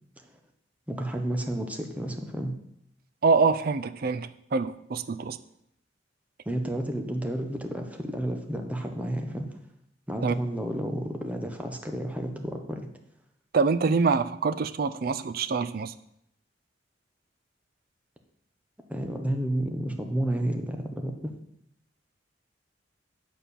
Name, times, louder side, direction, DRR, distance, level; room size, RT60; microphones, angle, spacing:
voice 1, 0.9-2.6 6.5-9.6 10.1-12.9 18.9-21.3, right 1 dB, 10° right, 3 dB, 0.9 m, -31 dB
voice 2, 3.2-5.4 10.2-10.3 13.5-15.9, right 4 dB, 55° right, 13 dB, 0.5 m, -25 dB
9.1 x 4.4 x 6.9 m, 0.75 s
head